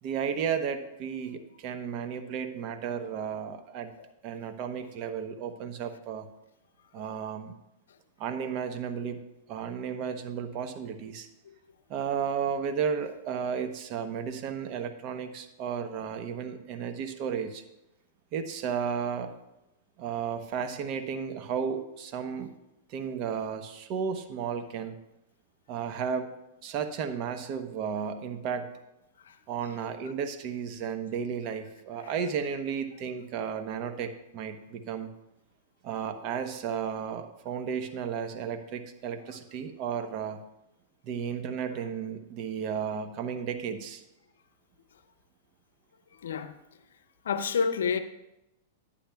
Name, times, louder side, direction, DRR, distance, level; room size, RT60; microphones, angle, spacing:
voice 1, 0.0-3.9 4.2-6.3 6.9-7.5 8.2-9.2 9.5-11.3 11.9-17.6 18.3-19.3 20.0-22.5 22.9-24.9 25.7-26.3 26.6-28.7 29.5-35.1 35.8-40.4 41.0-44.0, right 7 dB, 45° right, 0.8 m, -33 dB
voice 2, 46.2-46.5 47.2-48.0, left 6 dB, 80° left, 0.6 m, -28 dB
11.5 x 8.5 x 2.3 m
hypercardioid pair, 115°, 0 cm